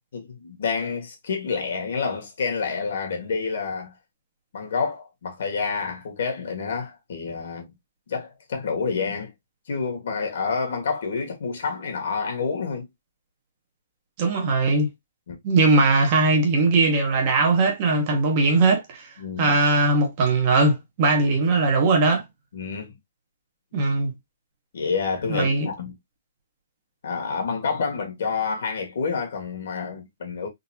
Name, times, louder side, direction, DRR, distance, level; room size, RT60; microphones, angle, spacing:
voice 1, 0.1-3.9 4.5-7.7 8.1-9.3 9.7-12.9 15.3-15.4 19.2-19.6 22.5-23.0 24.7-25.9 27.0-30.5, left 5 dB, 55° left, 1.6 m, -28 dB
voice 2, 14.2-14.9 15.4-19.1 19.4-22.2 23.7-24.1 25.3-25.7, right 3 dB, 30° right, 1.0 m, -20 dB
3.8 x 2.7 x 2.8 m
hypercardioid pair, 175°, 0 cm